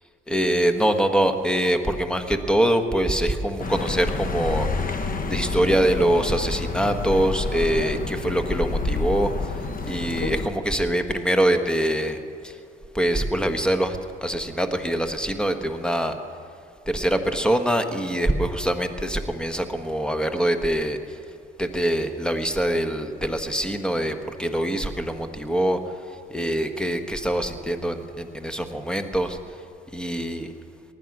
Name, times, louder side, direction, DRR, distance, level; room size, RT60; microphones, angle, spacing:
voice 1, 0.3-4.7 5.3-9.3 9.8-12.2 12.4-12.5 12.9-16.1 16.9-21.0 21.6-25.8 26.3-29.4 29.9-30.5, right 1 dB, 5° left, 7 dB, 1.3 m, -24 dB
Accelerating revving vroom, 3.6-10.5, left 3 dB, 45° left, 1.2 m, -28 dB
19.0 x 12.5 x 6.1 m, 2.5 s
cardioid pair, 90°, 20 cm